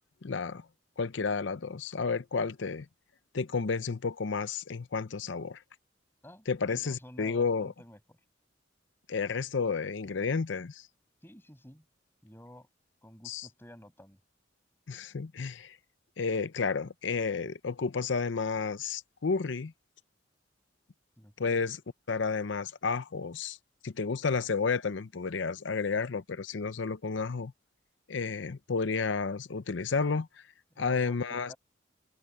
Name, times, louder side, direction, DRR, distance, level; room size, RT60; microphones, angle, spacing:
voice 1, 0.2-0.6 1.0-2.9 3.3-5.6 6.5-7.7 9.1-10.9 13.2-13.5 14.9-15.8 16.2-19.7 21.4-21.8 22.1-23.6 23.8-27.5 28.1-30.3 30.8-31.5, left 5 dB, 75° left, 0.7 m, -31 dB
voice 2, 6.2-8.0 11.2-11.8 12.2-12.7 13.0-14.2 21.2-21.6 30.7-31.2 31.5-31.6, equal, 10° left, 7.4 m, -51 dB
head